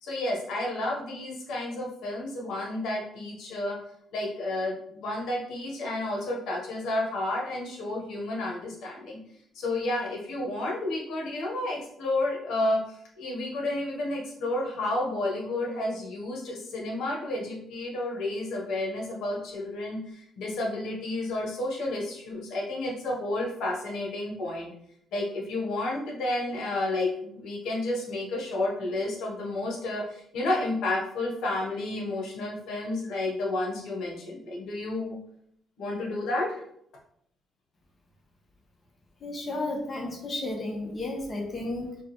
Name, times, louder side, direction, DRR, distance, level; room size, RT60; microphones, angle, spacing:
voice 1, 0.0-3.8 4.1-9.2 9.5-24.7 25.1-35.2 35.8-36.6, left 2 dB, 80° left, -1 dB, 1.1 m, -31 dB
voice 2, 39.2-42.0, left 2 dB, 40° left, 0 dB, 1.2 m, -33 dB
4.7 x 2.4 x 3.1 m, 0.70 s
cardioid pair, 90°, 0 cm